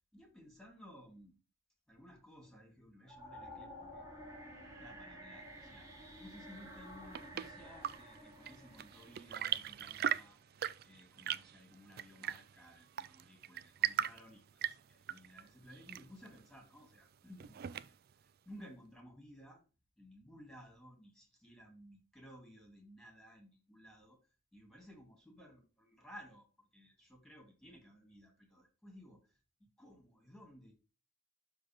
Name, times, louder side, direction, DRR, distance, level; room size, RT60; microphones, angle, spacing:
voice 1, 0.1-1.4 1.9-4.0 4.8-5.9 6.2-10.4 10.8-19.6 20.0-24.2 24.5-30.7, equal, ahead, 1 dB, 3.0 m, -57 dB
sound 1, 3.1-10.2, equal, 15° right, 2.0 m, -52 dB
Chirp tweet / Engine / Tap, 6.7-18.2, right 10 dB, 50° right, 0.3 m, -41 dB
12.0 x 4.0 x 3.8 m, 0.32 s
head